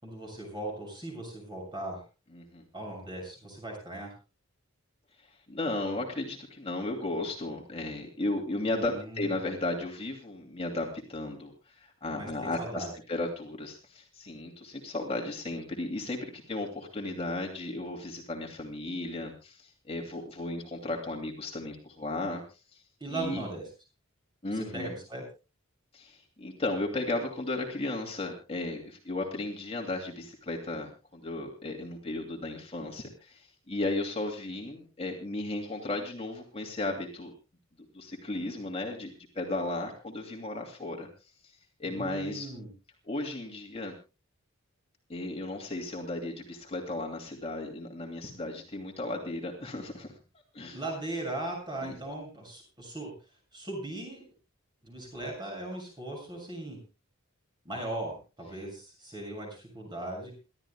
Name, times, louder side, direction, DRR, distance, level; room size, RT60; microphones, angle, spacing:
voice 1, 0.0-2.0 2.7-4.1 8.7-9.3 12.1-12.9 23.0-23.6 24.5-25.2 41.8-42.7 50.7-53.1 53.5-54.2 54.8-56.8 57.6-60.3, right 2 dB, 20° right, 0 dB, 6.9 m, -38 dB
voice 2, 2.3-2.6 5.2-22.8 23.1-23.4 24.4-24.9 25.9-37.3 37.9-41.3 41.8-42.5 43.1-43.9 45.1-50.1 50.5-50.8 51.8-51.9, left 2 dB, 25° left, 1 dB, 2.6 m, -35 dB
29.5 x 13.0 x 2.3 m, 0.31 s
head